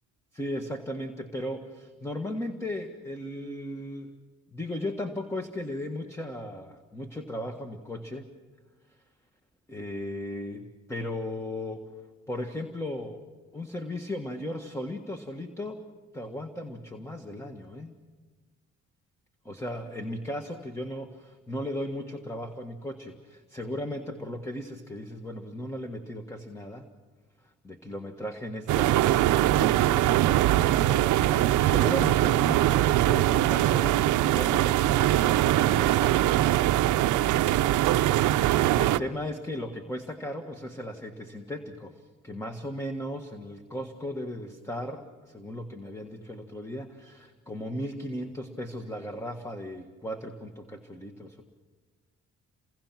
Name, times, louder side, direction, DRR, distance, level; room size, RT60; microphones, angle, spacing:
voice 1, 0.3-4.1 4.5-8.3 8.9-9.0 9.7-11.9 12.3-13.2 13.5-15.8 16.1-18.0 19.4-26.9 27.4-36.6 38.8-51.4, left 1 dB, 10° left, 5 dB, 1.6 m, -36 dB
sound 1, 28.7-39.0, right 14 dB, 85° right, 0.7 m, -22 dB
28.5 x 22.0 x 6.0 m, 1.3 s
cardioid pair, 90°, 30 cm